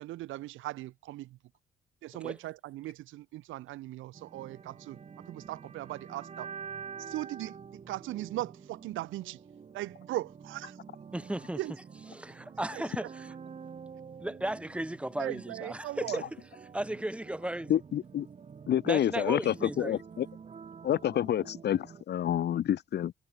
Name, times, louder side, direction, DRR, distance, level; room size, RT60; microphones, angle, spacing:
voice 1, 0.0-1.4 2.0-6.5 7.0-9.4 9.7-10.8 11.6-11.7 12.7-13.1 15.2-16.3, right 16 dB, 85° right, 0.8 m, -39 dB
sound 1, 4.1-22.0, right 6 dB, 35° right, 0.7 m, -48 dB
voice 2, 11.1-11.6 12.1-13.3 14.2-16.2 16.7-17.7 18.9-20.0, right 1 dB, 5° right, 1.2 m, -35 dB
voice 3, 17.7-18.3 18.7-20.3 20.8-23.1, left 11 dB, 55° left, 0.7 m, -28 dB
cardioid pair, 90°, 20 cm